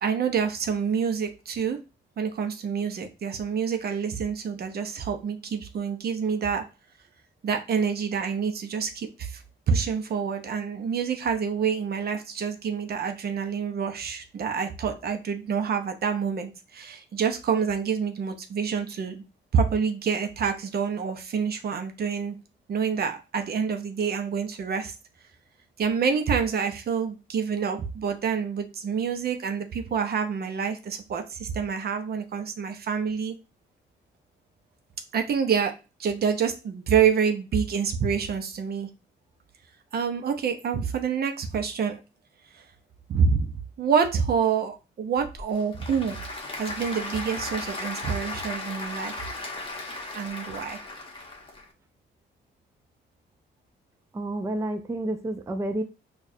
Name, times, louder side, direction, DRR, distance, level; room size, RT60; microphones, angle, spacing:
voice 1, 0.0-1.8 2.2-6.6 7.4-19.2 19.5-22.4 22.7-24.9 25.8-33.4 35.1-35.7 36.0-38.9 39.9-42.0 42.5-42.6 43.1-46.2 46.6-49.3 50.1-50.8, right 6 dB, 50° right, 7 dB, 0.7 m, -27 dB
Applause / Crowd, 45.2-51.6, left 2 dB, 25° left, 1.0 m, -36 dB
voice 2, 54.1-55.8, right 1 dB, 15° right, 6 dB, 0.4 m, -29 dB
4.6 x 2.4 x 2.7 m, 0.29 s
cardioid pair, 90°, 20 cm